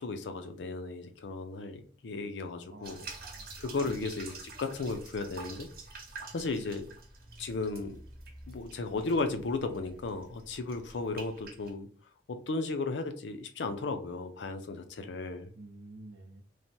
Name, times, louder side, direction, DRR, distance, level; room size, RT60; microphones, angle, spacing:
voice 1, 0.0-3.0 3.6-5.7 6.3-6.9 7.4-8.0 8.5-11.9 12.3-15.5, left 3 dB, 85° left, 7 dB, 0.5 m, -35 dB
voice 2, 2.7-3.5 3.8-4.2 15.5-16.4, right 2 dB, 85° right, 4 dB, 0.6 m, -50 dB
sound 1, 2.8-11.7, right 3 dB, 55° right, 0.8 m, -48 dB
3.2 x 2.1 x 2.7 m, 0.43 s
head